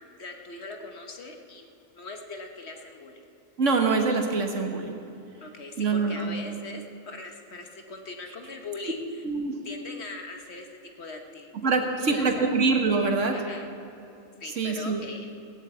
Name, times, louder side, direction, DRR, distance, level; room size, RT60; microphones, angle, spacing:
voice 1, 0.2-3.2 3.6-3.7 5.4-9.2 9.6-10.7 11.0-11.7 12.0-12.5 13.3-13.7 14.4-15.3, left 3 dB, 50° left, 4 dB, 1.3 m, -40 dB
voice 2, 3.6-5.0 5.8-6.3 9.2-9.6 11.6-13.3 14.6-15.0, right 4 dB, 60° right, 4 dB, 1.6 m, -24 dB
18.0 x 7.4 x 8.1 m, 2.7 s
omnidirectional pair, 1.5 m